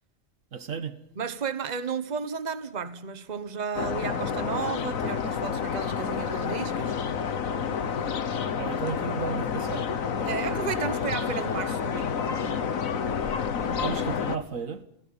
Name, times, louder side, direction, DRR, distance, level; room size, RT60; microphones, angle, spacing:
voice 1, 0.5-1.0 8.6-10.4 13.8-14.8, right 5 dB, 75° right, 1.9 m, -34 dB
voice 2, 1.2-6.9 10.2-12.7 13.6-13.8, right 6 dB, 35° right, 1.3 m, -33 dB
sound 1, 3.8-14.4, left 7 dB, 85° left, 1.6 m, -29 dB
27.5 x 16.5 x 8.9 m
omnidirectional pair, 1.4 m